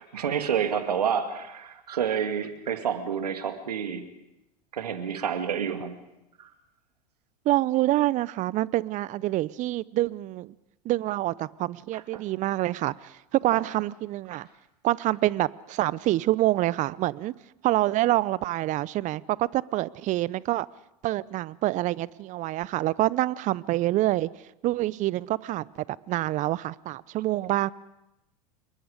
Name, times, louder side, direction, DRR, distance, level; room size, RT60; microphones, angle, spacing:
voice 1, 0.0-4.0 4.7-6.0 6.4-6.5 11.9-12.2 13.5-13.6 14.3-14.4, right 7 dB, 80° right, 2.3 m, -29 dB
voice 2, 7.5-10.5 10.8-14.5 14.8-17.3 17.6-20.7 21.0-24.3 24.6-25.6 26.1-27.7, right 16 dB, 40° right, 0.7 m, -26 dB
27.5 x 22.5 x 5.1 m
hypercardioid pair, 90°, 20 cm